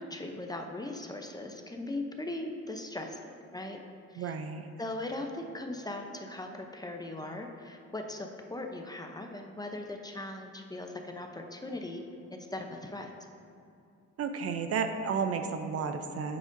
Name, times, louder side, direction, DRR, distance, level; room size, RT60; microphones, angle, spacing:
voice 1, 0.0-3.8 4.1-4.3 4.8-12.0 12.3-13.1, left 2 dB, 15° left, 3 dB, 0.6 m, -39 dB
voice 2, 4.1-4.7 14.2-16.4, right 5 dB, 50° right, 7 dB, 0.6 m, -32 dB
8.8 x 7.6 x 2.6 m, 2.6 s
cardioid pair, 90°, 30 cm